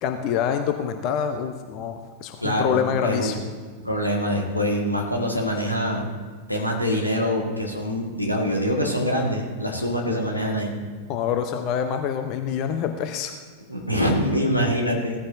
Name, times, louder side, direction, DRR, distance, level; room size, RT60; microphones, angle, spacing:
voice 1, 0.0-3.4 11.1-13.4, left 8 dB, 40° left, 7 dB, 0.8 m, -26 dB
voice 2, 2.4-3.3 3.8-6.1 6.5-10.7 13.7-15.3, equal, 90° left, 0 dB, 1.9 m, -24 dB
17.0 x 14.0 x 2.7 m, 1.5 s
figure-of-eight pair, 90°, 0 cm